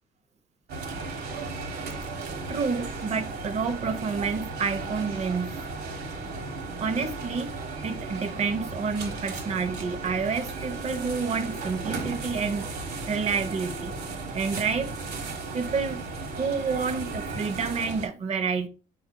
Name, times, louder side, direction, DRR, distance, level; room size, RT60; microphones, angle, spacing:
sound 1, 0.7-18.1, right 3 dB, 70° right, 1.3 m, -35 dB
voice 1, 2.5-5.6 6.8-7.5 7.8-12.7 13.1-13.9 14.3-14.9 15.5-16.0 16.4-18.7, right 5 dB, 40° right, 0.9 m, -29 dB
5.2 x 4.5 x 2.2 m
cardioid pair, 110°, 17 cm